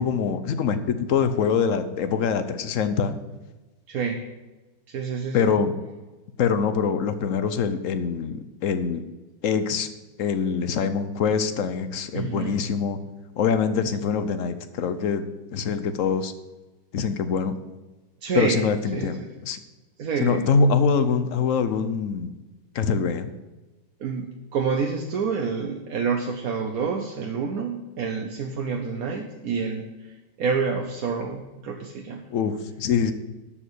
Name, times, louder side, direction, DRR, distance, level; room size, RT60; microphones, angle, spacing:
voice 1, 0.0-3.2 5.3-5.7 6.4-9.0 9.4-9.9 10.2-13.0 13.4-15.2 15.5-16.3 16.9-17.5 18.3-19.6 20.2-22.3 22.7-23.3 32.3-33.1, left 6 dB, 60° left, 10 dB, 0.8 m, -24 dB
voice 2, 3.9-4.2 4.9-5.5 12.1-12.6 18.2-18.7 18.9-19.3 20.0-20.6 24.0-32.2, right 5 dB, 55° right, 2 dB, 1.2 m, -28 dB
12.5 x 4.8 x 8.3 m, 1.1 s
omnidirectional pair, 2.1 m